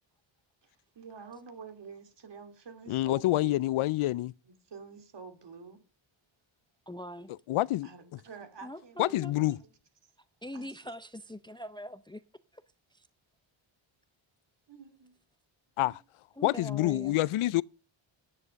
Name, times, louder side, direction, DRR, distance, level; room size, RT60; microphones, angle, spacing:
voice 1, 0.9-3.6 4.5-5.8 7.8-9.7 10.5-10.7 14.7-15.1 15.8-16.0, right 5 dB, 55° right, 2.8 m, -48 dB
voice 2, 2.9-4.3 7.5-8.2 9.0-9.6 15.8-16.0 16.4-17.6, left 16 dB, 80° left, 0.6 m, -27 dB
voice 3, 6.9-7.3 8.6-9.3 10.4-12.2 12.5-12.6 12.9-13.1 16.4-17.1, left 1 dB, 10° left, 0.6 m, -42 dB
11.0 x 9.7 x 6.3 m
wide cardioid pair, 115°, 49 cm